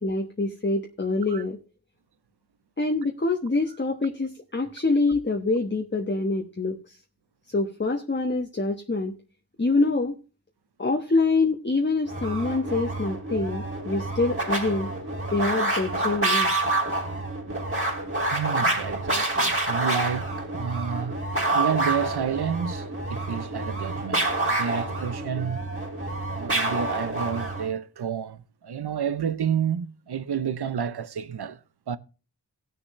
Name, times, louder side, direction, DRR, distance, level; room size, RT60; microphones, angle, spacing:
voice 1, 0.0-1.6 2.8-7.0 7.5-9.1 9.6-10.2 10.8-14.9 15.3-16.5, left 3 dB, 25° left, 1.2 m, -25 dB
sound 1, 12.0-27.7, right 2 dB, 30° right, 3.4 m, -28 dB
voice 2, 18.3-21.2 21.5-25.6 26.3-31.6 31.9-32.0, right 8 dB, 65° right, 0.8 m, -30 dB
17.5 x 6.7 x 3.2 m
wide cardioid pair, 55°, 41 cm